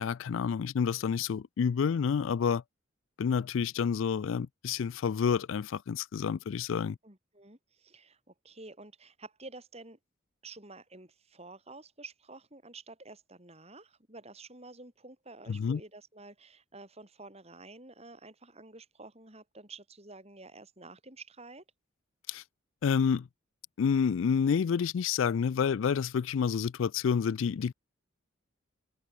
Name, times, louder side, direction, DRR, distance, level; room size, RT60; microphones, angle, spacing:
voice 1, 0.0-2.6 3.2-7.0 15.5-15.8 22.3-22.4 22.8-23.3 23.8-27.7, left 6 dB, 65° left, 0.4 m, -29 dB
voice 2, 7.0-10.0 10.4-21.6, right 3 dB, 30° right, 5.0 m, -50 dB
head